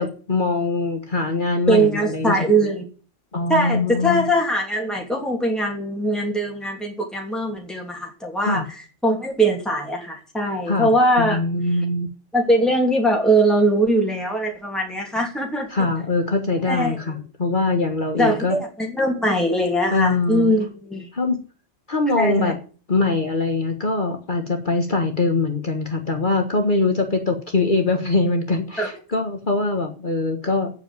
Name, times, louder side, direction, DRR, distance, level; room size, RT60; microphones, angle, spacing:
voice 1, 0.0-2.4 3.3-4.3 8.4-8.6 10.7-12.1 15.7-18.6 19.9-20.5 21.1-21.4 21.9-22.6 22.9-30.7, left 3 dB, 45° left, 4 dB, 1.7 m, -22 dB
voice 2, 1.7-2.8 3.5-8.6 9.0-11.4 12.3-15.7 16.7-17.0 18.2-21.1 22.2-22.5 28.8-28.9, right 1 dB, ahead, 0 dB, 2.9 m, -21 dB
8.8 x 7.5 x 9.1 m, 0.38 s
omnidirectional pair, 1.2 m